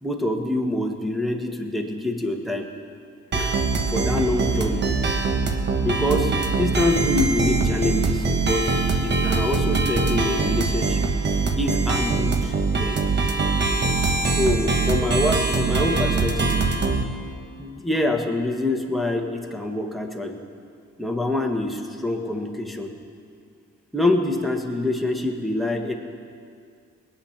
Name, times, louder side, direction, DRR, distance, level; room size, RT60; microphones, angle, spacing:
voice 1, 0.0-2.7 3.3-3.6 3.9-4.9 5.8-11.1 11.6-13.0 14.2-16.6 17.6-20.4 21.0-22.9 23.9-25.9, left 2 dB, ahead, 3 dB, 1.6 m, -25 dB
sound 1, 3.3-17.0, right 3 dB, 35° right, 1.2 m, -23 dB
20.0 x 8.7 x 5.9 m, 2.2 s
cardioid pair, 90°, 30 cm